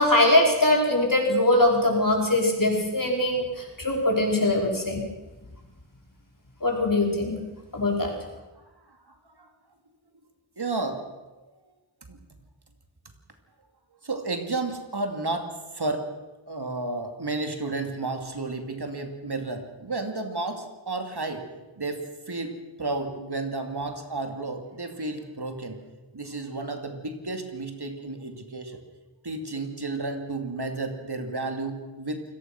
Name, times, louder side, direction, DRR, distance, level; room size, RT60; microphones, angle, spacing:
voice 1, 0.0-3.4 3.8-5.0 6.6-7.4 7.7-8.1, left 1 dB, 45° left, 0 dB, 5.3 m, -22 dB
voice 2, 10.6-11.0 12.1-12.2 14.0-15.5 15.7-16.1 16.5-21.4 21.8-25.8 26.1-28.8 29.2-32.2, right 3 dB, 55° right, 5 dB, 2.7 m, -32 dB
28.0 x 18.5 x 6.1 m, 1.1 s
wide cardioid pair, 65°, 47 cm